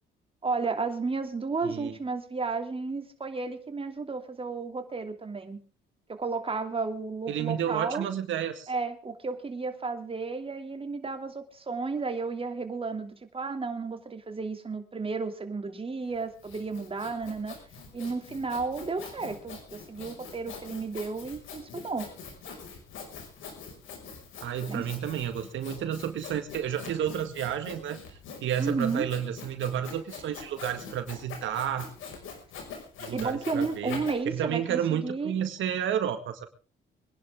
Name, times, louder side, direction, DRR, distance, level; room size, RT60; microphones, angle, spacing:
voice 1, 0.4-5.6 6.1-8.0 8.7-17.6 17.9-22.1 24.7-24.8 28.6-29.1 33.1-35.4, right 4 dB, 30° right, 6 dB, 2.8 m, -33 dB
voice 2, 1.6-2.0 7.3-8.7 24.4-31.9 33.0-34.0 34.3-36.5, right 9 dB, 75° right, 8 dB, 1.9 m, -31 dB
Sawing, 16.1-34.1, left 5 dB, 80° left, 5.8 m, -44 dB
24.5 x 11.0 x 3.7 m, 0.37 s
cardioid pair, 90°, 20 cm